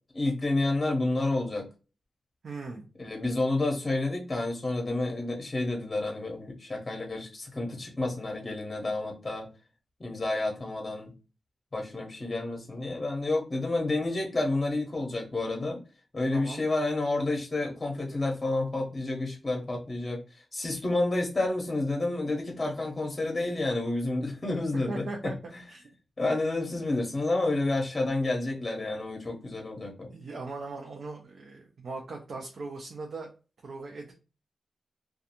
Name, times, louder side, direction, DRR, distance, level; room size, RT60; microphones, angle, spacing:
voice 1, 0.1-1.7 3.0-9.5 10.0-11.1 11.7-15.8 16.1-20.2 20.5-25.3 26.2-30.1, left 2 dB, 30° left, 1 dB, 0.7 m, -30 dB
voice 2, 2.4-2.9 16.3-16.6 24.9-25.4 25.7-25.8 30.1-33.3 33.6-34.1, right 3 dB, 75° right, 1 dB, 0.5 m, -39 dB
2.5 x 2.3 x 2.8 m, 0.33 s
wide cardioid pair, 105°, 0 cm